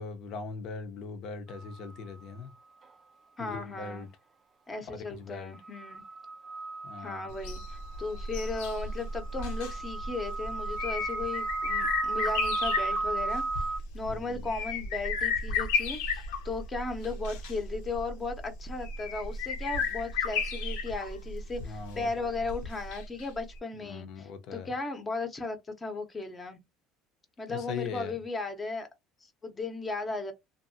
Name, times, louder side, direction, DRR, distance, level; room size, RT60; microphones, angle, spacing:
voice 1, 0.0-2.5 3.4-4.1 4.9-5.5 6.8-7.3 14.1-14.5 21.6-22.3 23.8-24.7 27.5-28.1, left 5 dB, 60° left, 0.7 m, -40 dB
sound 1, 1.5-1.8 5.6-13.8, right 3 dB, 35° right, 0.4 m, -35 dB
voice 2, 3.4-4.1 4.7-6.0 7.0-13.7 13.9-26.6 27.4-28.9 29.2-30.3, left 3 dB, 20° left, 0.8 m, -36 dB
sound 2, 7.3-23.2 23.5-23.6, left 4 dB, 85° left, 0.9 m, -34 dB
2.7 x 2.6 x 2.6 m
cardioid pair, 120°, 0 cm